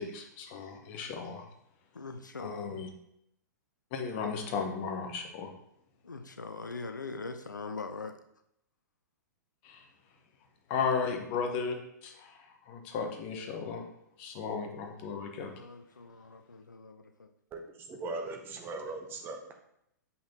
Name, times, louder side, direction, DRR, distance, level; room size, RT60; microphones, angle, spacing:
voice 1, 0.0-1.4 2.4-2.9 3.9-5.5 9.6-9.8 10.7-11.8 12.0-13.8 14.2-15.5, left 5 dB, 35° left, 4 dB, 1.1 m, -35 dB
voice 2, 1.9-2.8 6.0-8.1 15.5-17.3, left 3 dB, 75° left, 8 dB, 0.6 m, -42 dB
voice 3, 17.5-19.4, right 3 dB, 20° right, 3 dB, 0.9 m, -39 dB
7.5 x 5.5 x 2.9 m, 0.76 s
figure-of-eight pair, 110°, 10 cm